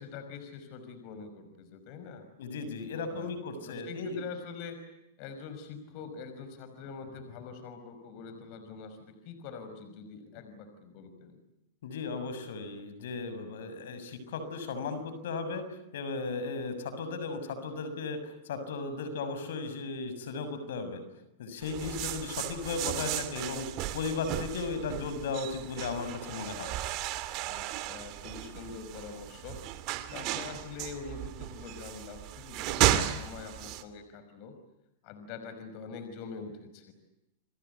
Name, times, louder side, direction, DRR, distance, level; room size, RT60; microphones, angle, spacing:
voice 1, 0.0-2.2 3.1-3.4 3.6-4.8 5.2-11.4 27.4-29.6 30.1-34.5 35.0-36.9, left 5 dB, 50° left, 9 dB, 5.5 m, -44 dB
voice 2, 2.4-4.2 11.8-15.6 15.9-21.0 21.4-26.7, left 4 dB, 75° left, 11 dB, 6.8 m, -36 dB
sound 1, 21.6-33.8, right 13 dB, 45° right, 2.8 m, -34 dB
30.0 x 23.0 x 8.3 m, 0.87 s
hypercardioid pair, 125°, 0 cm